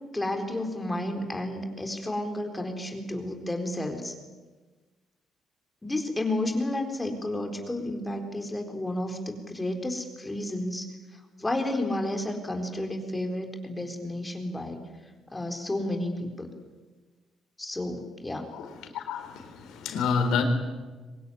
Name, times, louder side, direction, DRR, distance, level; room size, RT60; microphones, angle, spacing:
voice 1, 0.1-4.1 5.8-10.9 11.4-14.8 15.3-16.5 17.6-18.5, left 1 dB, 15° left, 4 dB, 4.2 m, -31 dB
voice 2, 18.9-20.4, left 6 dB, 85° left, 7 dB, 4.1 m, -28 dB
24.0 x 20.0 x 9.9 m, 1.3 s
cardioid pair, 90°, 0 cm